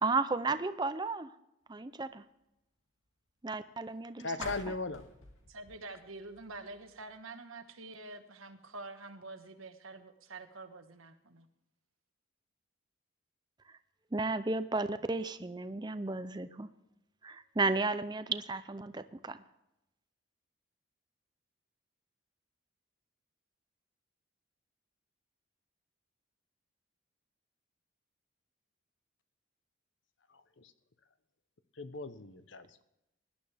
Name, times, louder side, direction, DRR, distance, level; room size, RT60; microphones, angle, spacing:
voice 1, 0.0-1.3 1.7-2.2 3.4-4.7 14.1-16.7 17.2-19.4, right 3 dB, 20° right, 12 dB, 0.5 m, -33 dB
voice 2, 4.2-5.0 30.6-30.7 31.8-32.8, left 3 dB, 65° left, 12 dB, 0.8 m, -38 dB
sound 1, 4.3-7.2, left 2 dB, 90° left, 2.3 m, -49 dB
voice 3, 5.5-11.5, right 2 dB, 90° right, 7 dB, 1.4 m, -47 dB
18.0 x 11.5 x 3.5 m, 0.88 s
head